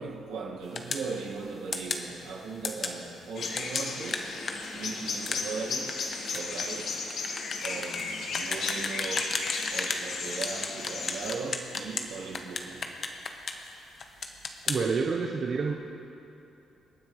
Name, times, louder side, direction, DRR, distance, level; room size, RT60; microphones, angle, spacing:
voice 1, 0.0-4.3 4.7-6.0 6.3-6.9 7.6-9.4 9.7-12.8, right 4 dB, 85° right, 1.8 m, -38 dB
sound 1, 0.8-1.1 1.7-2.1 2.6-3.0 3.6-10.1 10.4-12.1 12.3-13.7 14.0-14.8, left 4 dB, 45° left, 1.1 m, -33 dB
sound 2, 3.3-11.3, left 4 dB, 65° left, 1.4 m, -35 dB
voice 2, 14.7-15.7, right 5 dB, 50° right, 0.8 m, -28 dB
26.0 x 9.5 x 3.2 m
cardioid pair, 90°, 0 cm